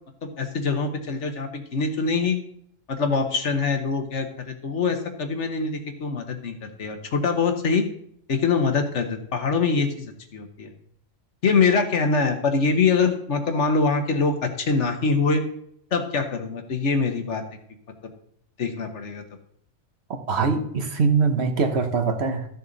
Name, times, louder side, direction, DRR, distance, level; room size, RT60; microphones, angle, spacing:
voice 1, 0.2-2.4 2.9-7.8 8.3-10.7 11.4-15.4 15.9-17.4 18.6-19.2, left 4 dB, 65° left, 6 dB, 1.4 m, -24 dB
voice 2, 20.3-22.5, right 4 dB, 55° right, 6 dB, 1.3 m, -22 dB
13.5 x 6.7 x 4.0 m, 0.68 s
omnidirectional pair, 1.3 m